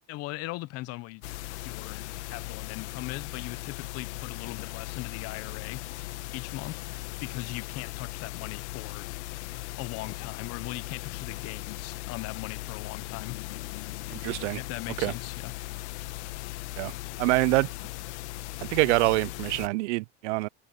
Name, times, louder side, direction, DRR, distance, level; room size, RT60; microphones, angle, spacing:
voice 1, 0.1-1.2 1.6-5.8 6.3-6.8 7.2-9.1 9.8-13.4 14.5-15.5, left 20 dB, 45° left, 0.9 m, -39 dB
sound 1, 1.2-19.7, left 19 dB, 85° left, 1.2 m, -38 dB
voice 2, 14.1-14.6 15.0-15.1 16.8-16.9 17.2-17.7 18.6-20.5, right 24 dB, 85° right, 0.5 m, -25 dB
supercardioid pair, 140°, 33 cm